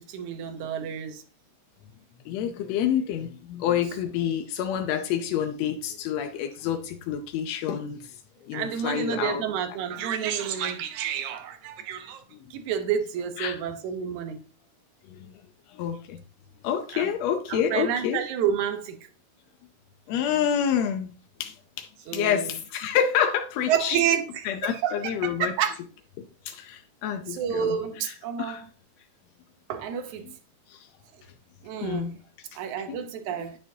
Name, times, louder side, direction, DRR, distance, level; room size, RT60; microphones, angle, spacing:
voice 1, 0.1-1.2 8.5-12.2 12.5-14.4 16.9-17.1 17.5-19.0 22.1-22.6 23.7-25.8 27.3-28.7 29.7-30.3 31.6-32.1 32.6-33.6, right 8 dB, 75° right, 2.2 m, -29 dB
voice 2, 2.2-8.1 8.5-9.4 12.3-12.4 13.4-13.6 15.1-15.3 15.7-16.2 16.6-18.2 20.1-21.1 21.4-24.0 24.4-25.5 26.2-28.6 30.7-30.9 31.8-32.2 32.9-33.0, left 9 dB, 75° left, 1.6 m, -28 dB
9.7 x 8.2 x 2.7 m
omnidirectional pair, 3.6 m